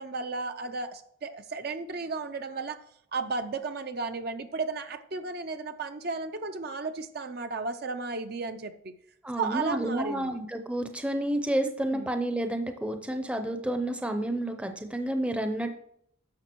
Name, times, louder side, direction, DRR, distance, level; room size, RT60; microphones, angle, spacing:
voice 1, 0.0-2.8 3.1-8.9 9.4-10.4 11.9-12.1, right 4 dB, 45° right, 8 dB, 0.5 m, -34 dB
voice 2, 9.2-15.7, right 1 dB, 5° right, 6 dB, 0.6 m, -30 dB
10.5 x 6.6 x 4.6 m, 0.70 s
head